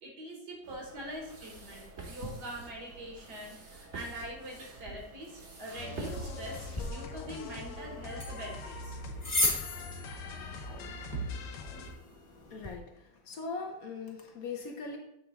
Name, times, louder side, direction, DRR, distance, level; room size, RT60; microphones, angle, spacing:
voice 1, 0.0-9.0 11.1-11.3, right 1 dB, 70° right, -1 dB, 2.0 m, -43 dB
sound 1, 0.6-6.9, right 2 dB, 45° right, 1.2 m, -46 dB
sound 2, 5.8-11.9, left 3 dB, 80° left, 1.4 m, -42 dB
sound 3, 6.7-12.7, left 2 dB, 20° left, 1.1 m, -37 dB
voice 2, 12.5-12.9 13.3-15.0, left 4 dB, 65° left, 2 dB, 1.1 m, -39 dB
7.8 x 3.4 x 4.0 m, 0.83 s
omnidirectional pair, 1.9 m